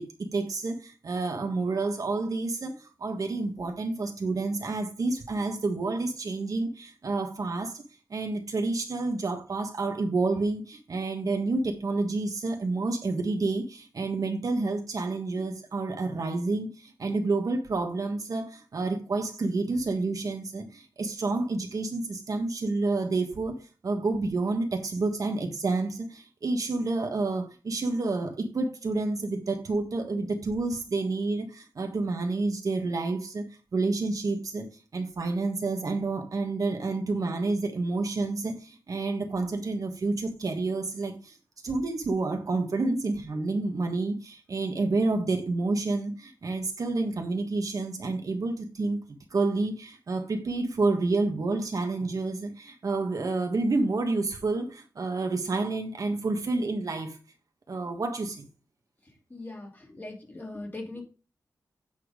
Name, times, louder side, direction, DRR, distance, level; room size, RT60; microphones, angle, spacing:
voice 1, 0.0-7.8 8.1-23.6 23.8-33.4 33.7-34.7 34.9-41.4 41.6-49.0 49.3-57.2 57.7-58.5, right 3 dB, 55° right, 1.5 m, -29 dB
voice 2, 59.3-61.0, left 2 dB, 25° left, 2.5 m, -40 dB
8.5 x 4.5 x 5.0 m
wide cardioid pair, 115°, 7 cm